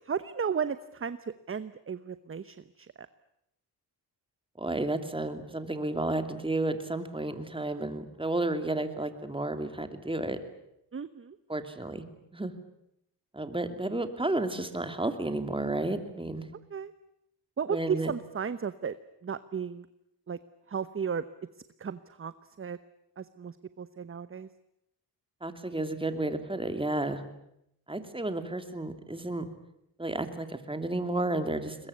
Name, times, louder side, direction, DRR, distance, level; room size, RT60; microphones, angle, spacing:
voice 1, 0.0-3.1 10.9-11.4 16.7-16.9 17.6-19.0 19.2-19.9 20.3-20.4 20.7-21.2 21.8-22.3 22.6-22.8 23.2-24.5, right 7 dB, 30° right, 14 dB, 0.9 m, -34 dB
voice 2, 4.6-10.4 11.5-12.0 12.3-12.5 13.3-16.4 17.7-18.1 25.4-27.2 27.9-29.5 30.0-31.8, right 2 dB, 15° right, 8 dB, 2.8 m, -32 dB
22.0 x 22.0 x 9.7 m, 0.80 s
cardioid pair, 85°, 40 cm